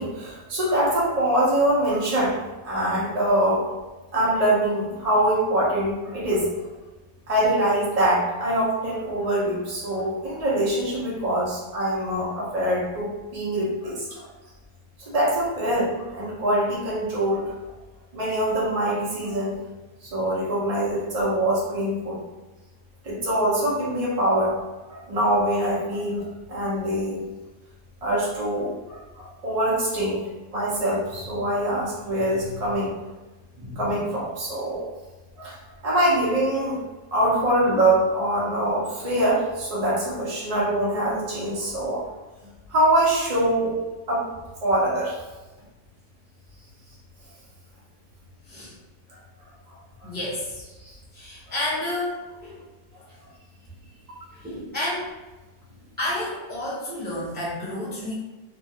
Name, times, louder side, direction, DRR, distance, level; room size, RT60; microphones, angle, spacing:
voice 1, 0.0-2.4 2.6-3.7 4.1-6.5 7.3-14.3 15.0-17.4 18.1-19.6 20.0-22.2 23.0-24.5 24.9-27.2 28.0-30.2 30.5-32.9 33.6-34.9 35.4-35.6 35.8-36.8 37.1-42.1 42.7-43.8 44.1-44.3 44.6-45.2 50.8-50.9, right 1 dB, 80° right, -6 dB, 0.3 m, -24 dB
voice 2, 50.0-50.6 51.1-52.1 52.4-52.6 54.3-55.1 56.0-58.1, left 1 dB, 15° right, -8 dB, 0.4 m, -30 dB
2.9 x 2.4 x 2.8 m, 1.1 s
omnidirectional pair, 1.9 m